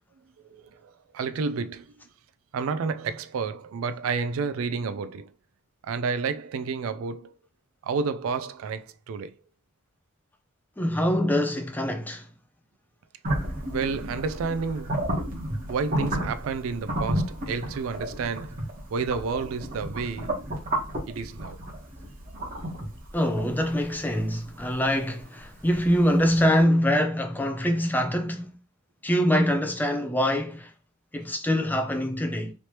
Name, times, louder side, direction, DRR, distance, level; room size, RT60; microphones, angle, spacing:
voice 1, 0.4-1.9 2.5-5.3 5.8-7.3 7.8-9.3 13.7-15.2 15.7-20.4 21.1-21.6, right 5 dB, 80° right, 0.3 m, -30 dB
voice 2, 10.8-12.3 23.1-28.6 29.0-30.7 31.1-32.5, equal, 10° left, 0.4 m, -24 dB
sound 1, 13.2-26.1, right 1 dB, 40° right, 1.1 m, -32 dB
3.2 x 2.9 x 2.9 m
head